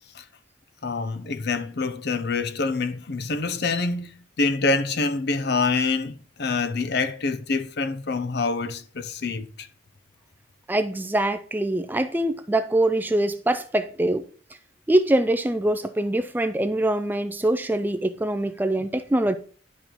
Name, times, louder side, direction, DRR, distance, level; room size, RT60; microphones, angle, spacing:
voice 1, 0.8-4.1 4.4-9.7, left 3 dB, 55° left, 0.6 m, -26 dB
voice 2, 10.7-14.3 14.9-19.4, right 1 dB, 10° right, 0.3 m, -23 dB
11.0 x 5.2 x 3.0 m
head